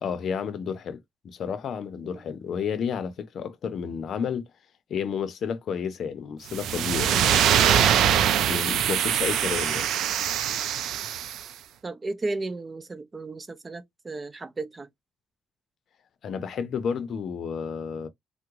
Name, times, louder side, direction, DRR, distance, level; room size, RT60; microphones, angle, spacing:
voice 1, 0.0-1.0 1.2-4.5 4.9-7.9 8.5-9.9 16.2-18.1, left 7 dB, 65° left, 0.6 m, -31 dB
sound 1, 6.5-11.4, right 9 dB, 80° right, 0.4 m, -23 dB
voice 2, 11.8-14.9, right 2 dB, 30° right, 0.6 m, -34 dB
3.5 x 2.1 x 3.0 m
cardioid pair, 90°, 0 cm